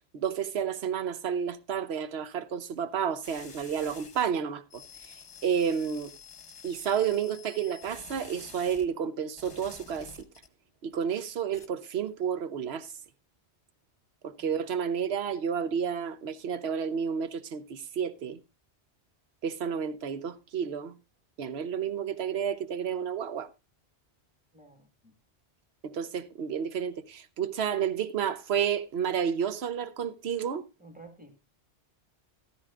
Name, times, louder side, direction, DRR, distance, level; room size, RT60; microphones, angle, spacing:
voice 1, 0.1-4.8 5.4-6.1 6.6-10.3 10.8-12.9 14.2-18.4 19.4-20.9 21.4-23.5 25.8-30.6, right 7 dB, 70° right, 1.0 m, -31 dB
sound 1, 3.2-4.3 4.7-8.9 9.4-10.5 10.9-11.7, left 5 dB, 30° left, 1.0 m, -49 dB
voice 2, 24.5-25.1 30.8-31.4, right 2 dB, 5° right, 1.6 m, -52 dB
14.0 x 13.0 x 2.4 m
omnidirectional pair, 1.1 m